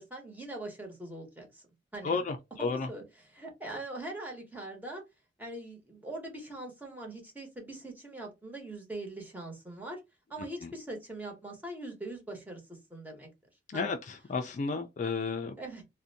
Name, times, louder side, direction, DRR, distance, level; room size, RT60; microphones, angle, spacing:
voice 1, 0.0-1.6 1.9-2.2 2.6-3.0 3.3-5.0 5.4-10.0 10.3-13.3 13.7-14.0 15.6-15.8, right 2 dB, 10° right, 0.9 m, -42 dB
voice 2, 2.0-2.9 10.6-10.7 13.7-15.5, left 4 dB, 40° left, 0.3 m, -32 dB
2.5 x 2.1 x 2.6 m
head